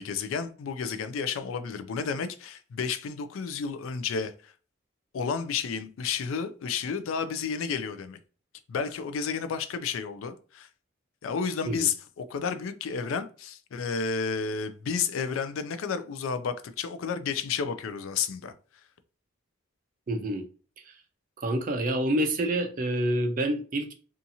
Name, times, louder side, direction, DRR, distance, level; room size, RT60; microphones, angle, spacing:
voice 1, 0.0-4.5 5.1-8.2 8.7-10.7 11.2-18.5, left 6 dB, 75° left, 0.3 m, -31 dB
voice 2, 20.1-20.5 20.8-21.0 21.4-23.9, right 1 dB, 40° right, 0.4 m, -28 dB
2.7 x 2.4 x 2.6 m
head